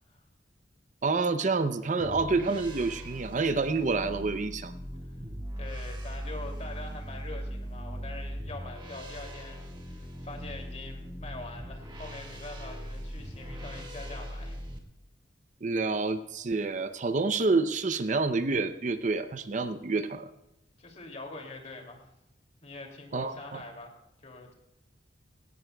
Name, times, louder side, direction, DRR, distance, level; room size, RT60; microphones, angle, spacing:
voice 1, 1.0-4.7 15.6-20.3 23.1-23.6, right 3 dB, 40° right, 10 dB, 0.6 m, -28 dB
sound 1, 2.0-14.8, equal, 25° right, 1.6 m, -40 dB
voice 2, 5.6-14.6 20.8-22.1 22.6-24.5, left 2 dB, 35° left, 2 dB, 2.6 m, -44 dB
17.0 x 17.0 x 2.3 m, 0.90 s
head